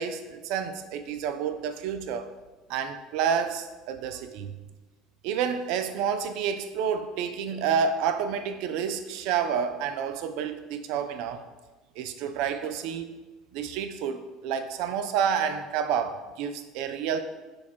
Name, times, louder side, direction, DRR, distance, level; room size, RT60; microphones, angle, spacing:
voice 1, 0.0-2.3 2.7-4.5 5.2-11.4 12.0-13.1 13.5-17.2, right 7 dB, 65° right, 9 dB, 0.3 m, -29 dB
4.2 x 2.3 x 4.3 m, 1.2 s
hypercardioid pair, 70°, 0 cm